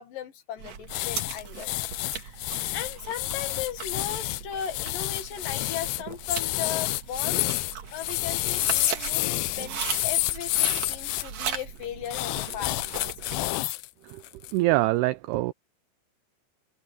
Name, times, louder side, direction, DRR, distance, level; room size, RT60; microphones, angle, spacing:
voice 1, 0.0-1.8 2.1-2.4 2.7-7.4 7.9-13.4, left 9 dB, 60° left, 2.7 m, -37 dB
sound 1, 0.6-13.5, right 7 dB, 50° right, 2.3 m, -38 dB
sound 2, 0.9-11.2 12.1-13.9 14.2-14.5, left 18 dB, 85° left, 2.2 m, -29 dB
voice 2, 14.5-15.5, right 18 dB, 90° right, 2.3 m, -24 dB
omnidirectional pair, 5.3 m